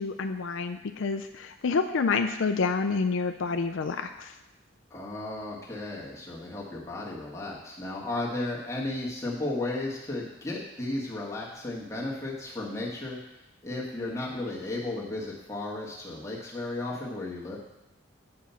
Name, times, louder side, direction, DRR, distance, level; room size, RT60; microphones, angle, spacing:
voice 1, 0.0-4.4, left 4 dB, 70° left, 7 dB, 0.4 m, -28 dB
voice 2, 4.9-13.2 13.6-17.6, left 2 dB, 15° left, -5 dB, 1.6 m, -34 dB
8.3 x 4.9 x 5.7 m, 0.94 s
head